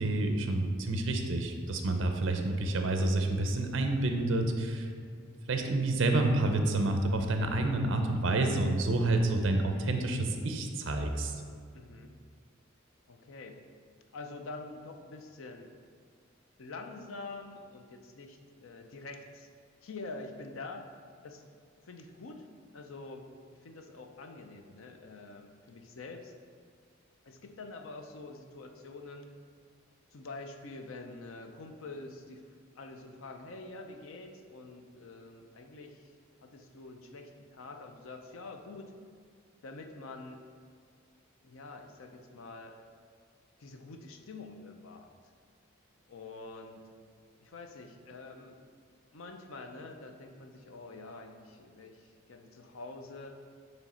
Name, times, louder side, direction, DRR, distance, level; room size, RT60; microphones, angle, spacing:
voice 1, 0.0-4.9 5.4-11.3, right 2 dB, 60° right, 5 dB, 0.6 m, -29 dB
voice 2, 11.7-12.1 13.1-13.6 14.1-15.7 16.6-19.5 19.8-20.9 21.2-21.4 21.8-22.5 22.7-23.3 23.6-26.3 27.2-29.3 30.1-32.4 32.8-36.1 36.4-38.9 39.6-40.4 41.4-42.8 43.6-45.1 46.1-46.9 47.4-48.6 49.1-53.3, left 3 dB, 70° left, 5 dB, 0.5 m, -46 dB
7.1 x 3.2 x 4.3 m, 2.1 s
head